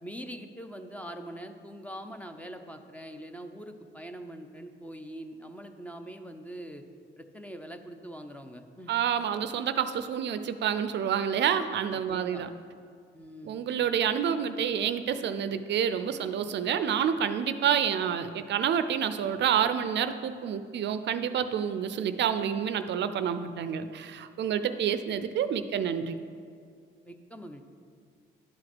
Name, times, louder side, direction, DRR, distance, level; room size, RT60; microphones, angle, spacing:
voice 1, 0.0-6.8 7.2-8.9 11.9-12.4 13.1-13.6 27.1-27.6, right 1 dB, 5° left, 6 dB, 0.7 m, -43 dB
voice 2, 8.9-12.5 13.4-26.2, right 8 dB, 65° right, 11 dB, 0.5 m, -28 dB
11.5 x 4.9 x 6.1 m, 2.2 s
cardioid pair, 90°, 20 cm